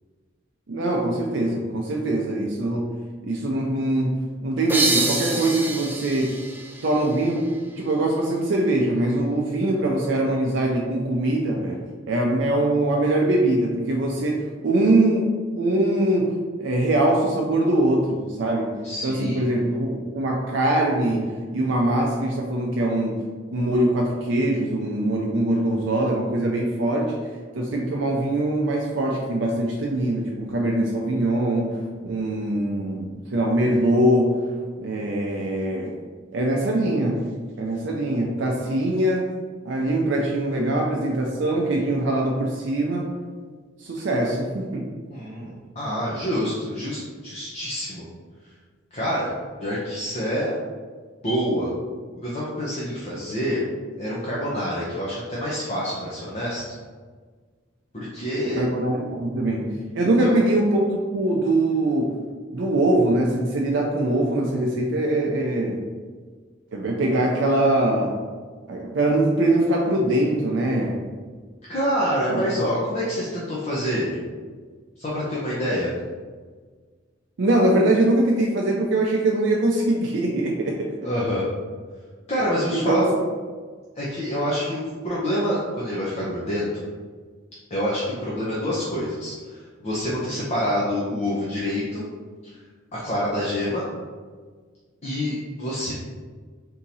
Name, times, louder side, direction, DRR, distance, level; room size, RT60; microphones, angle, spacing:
voice 1, 0.7-2.9 3.2-6.4 6.8-7.4 7.8-11.8 12.1-18.7 19.0-23.2 23.5-27.1 27.5-33.1 33.3-34.4 34.8-35.9 36.3-37.2 37.6-39.3 39.7-43.1 43.8-44.8 58.6-62.2 62.5-65.8 66.7-68.1 68.7-70.9 72.3-72.4 77.4-80.9 82.7-83.2, right 1 dB, 70° right, -1 dB, 0.5 m, -22 dB
sound 1, 4.7-8.1, right 3 dB, 10° right, 0.3 m, -27 dB
voice 2, 18.8-19.5 45.1-48.1 48.9-49.3 49.6-50.5 51.2-51.7 52.1-53.6 54.0-56.6 57.9-58.6 60.0-60.4 71.7-74.2 75.0-75.9 81.0-81.5 82.3-83.1 84.0-86.8 87.7-92.0 92.9-93.8 95.0-95.9, equal, 35° left, -7 dB, 0.7 m, -27 dB
3.7 x 2.9 x 4.0 m, 1.5 s
head